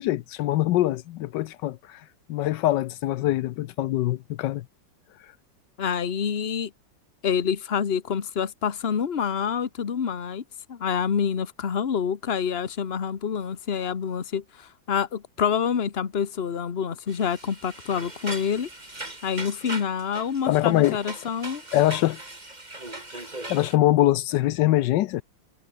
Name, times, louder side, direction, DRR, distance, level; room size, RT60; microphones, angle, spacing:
voice 1, 0.0-2.0 2.3-4.6 20.4-21.0 21.7-22.2 23.1-23.2 23.5-25.2, left 15 dB, 80° left, 1.3 m, -23 dB
voice 2, 5.8-6.7 7.2-10.4 10.7-18.7 19.2-21.6, left 7 dB, 35° left, 1.3 m, -27 dB
sound 1, 17.1-23.8, right 2 dB, 25° right, 3.8 m, -39 dB
omnidirectional pair, 1.9 m